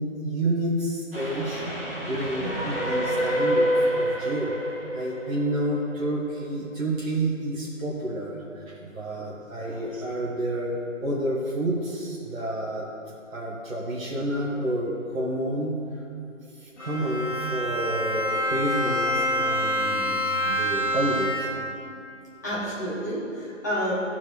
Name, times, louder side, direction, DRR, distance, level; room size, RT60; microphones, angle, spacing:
voice 1, 0.0-1.6 2.0-4.5 4.9-8.4 8.6-12.8 13.3-15.8 16.6-21.5, right 1 dB, 90° right, -6 dB, 1.5 m, -29 dB
Train, 1.1-6.4, equal, 45° right, 2.1 m, -27 dB
Bowed string instrument, 16.8-21.8, equal, 60° left, 2.0 m, -27 dB
voice 2, 22.4-23.9, equal, 15° left, -10 dB, 1.1 m, -30 dB
13.5 x 4.6 x 4.4 m, 2.7 s
hypercardioid pair, 175°, 39 cm